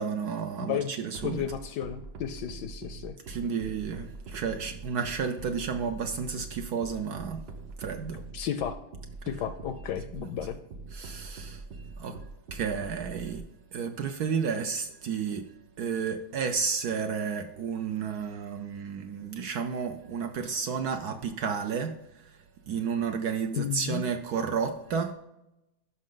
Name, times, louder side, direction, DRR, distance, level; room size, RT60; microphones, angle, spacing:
voice 1, 0.0-1.4 3.3-7.4 7.8-8.2 10.9-11.6 12.0-12.2 12.5-13.4 13.7-15.5 15.8-22.3 22.7-25.1, right 6 dB, 65° right, 7 dB, 1.0 m, -32 dB
voice 2, 0.6-0.9 1.2-3.1 8.3-8.8 9.3-10.6 23.5-24.0, left 9 dB, 70° left, 11 dB, 1.1 m, -33 dB
sound 1, 1.1-13.4, right 3 dB, 85° right, 0.5 m, -43 dB
13.0 x 5.5 x 3.8 m, 0.89 s
omnidirectional pair, 2.2 m